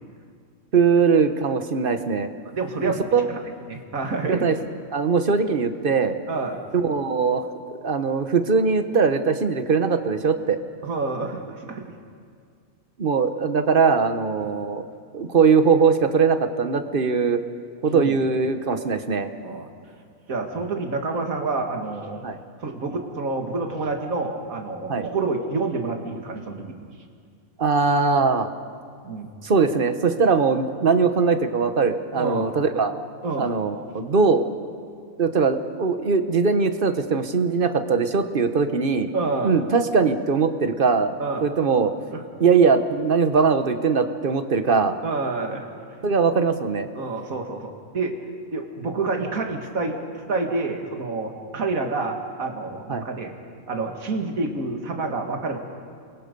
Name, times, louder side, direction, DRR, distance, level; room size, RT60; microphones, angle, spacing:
voice 1, 0.7-2.3 2.8-3.2 4.3-4.5 4.9-6.2 6.7-7.4 7.8-10.6 13.0-14.8 15.1-17.4 17.8-19.3 22.2-22.4 24.9-25.1 27.6-28.5 29.4-32.9 33.4-34.5 35.2-39.1 39.4-41.9 42.4-45.0 46.0-46.9 52.9-53.0, right 5 dB, 40° right, 9 dB, 1.2 m, -21 dB
voice 2, 2.4-3.0 3.3-3.4 3.7-4.5 6.3-6.6 10.8-11.8 17.8-18.2 19.4-19.7 20.3-22.2 22.6-26.7 29.0-29.3 32.2-32.5 33.2-33.5 39.1-39.6 41.2-41.5 42.1-42.2 45.0-45.7 46.9-48.2 48.5-50.0 50.3-53.3 53.7-55.6, right 3 dB, 80° right, 3 dB, 2.4 m, -28 dB
29.0 x 22.5 x 5.3 m, 2.1 s
omnidirectional pair, 1.4 m